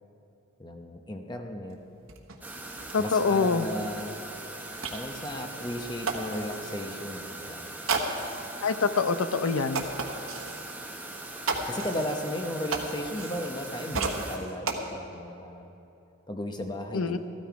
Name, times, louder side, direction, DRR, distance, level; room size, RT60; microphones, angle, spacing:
voice 1, 0.6-1.8 3.0-4.2 4.9-7.7 11.6-15.7 16.3-17.2, left 1 dB, 20° left, 4 dB, 0.8 m, -35 dB
sound 1, 1.7-1.8 2.1-6.8 7.9-8.5 9.1-9.2 9.7-10.7 11.4-13.7 13.9-14.8, right 4 dB, 75° right, 1.2 m, -34 dB
sound 2, 2.4-14.4, right 2 dB, 10° right, 0.9 m, -41 dB
voice 2, 2.9-3.7 8.6-9.8 16.9-17.2, left 4 dB, 80° left, 11 dB, 0.6 m, -25 dB
14.0 x 13.0 x 4.7 m, 2.8 s
head